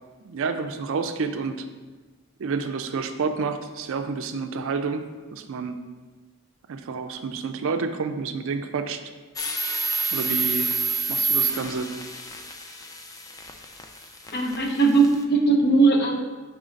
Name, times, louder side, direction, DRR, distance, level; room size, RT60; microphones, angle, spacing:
voice 1, 0.2-1.7 2.4-5.0 5.3-5.8 6.7-9.0 10.1-10.8 11.1-11.9, right 5 dB, 60° right, 7 dB, 0.4 m, -29 dB
sound 1, 9.4-15.2, right 3 dB, 15° left, 0.3 m, -28 dB
voice 2, 14.3-16.2, right 3 dB, 50° left, 3 dB, 0.7 m, -19 dB
4.8 x 3.8 x 5.1 m, 1.3 s
head